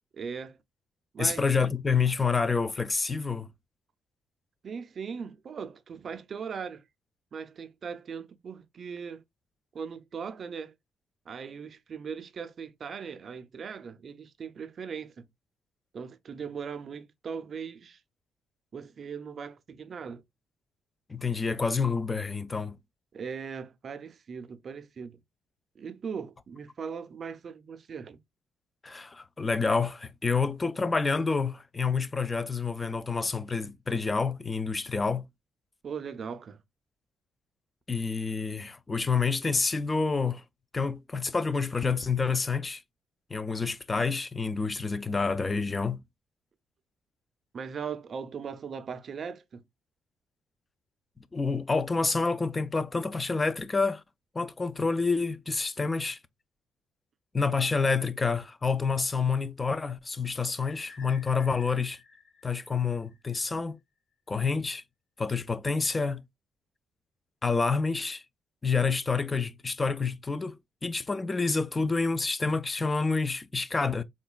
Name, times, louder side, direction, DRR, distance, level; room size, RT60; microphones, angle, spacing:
voice 1, 0.2-0.6 1.1-1.7 4.6-6.8 7.3-9.2 9.7-10.7 11.3-15.3 15.9-18.0 18.7-20.2 23.1-25.2 25.8-28.2 35.8-36.6 47.5-49.6, right 6 dB, 50° right, 0.4 m, -39 dB
voice 2, 1.2-3.5 21.1-22.8 28.8-35.3 37.9-40.4 40.7-42.8 43.3-46.0 51.3-54.0 54.3-56.2 57.3-62.0 62.4-63.8 64.3-64.8 65.2-66.2 67.4-68.2 68.6-74.0, left 4 dB, 25° left, 0.3 m, -28 dB
sound 1, 60.6-63.4, left 5 dB, 45° left, 1.6 m, -53 dB
3.8 x 2.2 x 2.2 m
cardioid pair, 90°, 0 cm